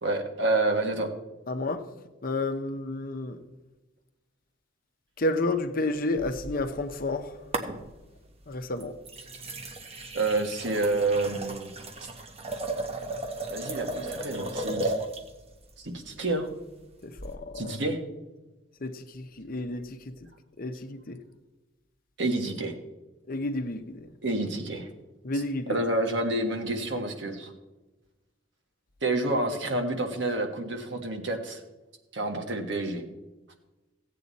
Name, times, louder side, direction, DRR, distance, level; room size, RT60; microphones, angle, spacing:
voice 1, 0.0-1.1 10.1-11.7 12.0-12.1 13.5-14.9 15.8-16.5 17.5-18.0 22.2-22.7 24.2-24.9 25.3-27.5 29.0-31.6 32.1-33.0, right 2 dB, 65° right, 1.6 m, -28 dB
voice 2, 1.5-1.9 2.2-3.4 5.2-7.4 8.5-9.0 17.0-17.8 18.8-20.1 20.6-21.2 23.3-24.1 25.2-25.8, left 2 dB, 50° left, 0.8 m, -31 dB
sound 1, 6.2-7.1 7.5-8.2 8.8-15.3 17.2-17.3, right 2 dB, 30° right, 1.1 m, -35 dB
15.5 x 8.4 x 4.1 m
head